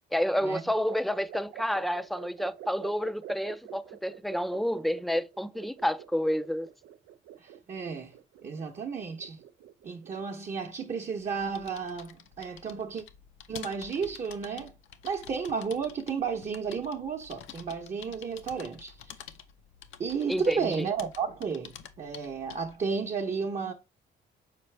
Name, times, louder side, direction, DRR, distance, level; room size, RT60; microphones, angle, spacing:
voice 1, 0.1-6.7 20.3-20.9, equal, ahead, 0.4 m, -29 dB
sound 1, 0.7-10.3, right 11 dB, 80° right, 0.5 m, -47 dB
voice 2, 7.4-8.1 8.4-9.4 9.8-13.0 13.5-14.7 15.0-19.2 20.0-23.7, right 5 dB, 40° right, 0.9 m, -33 dB
sound 2, 11.2-22.8, left 9 dB, 80° left, 0.8 m, -49 dB
6.7 x 4.4 x 3.3 m
cardioid pair, 90°, 20 cm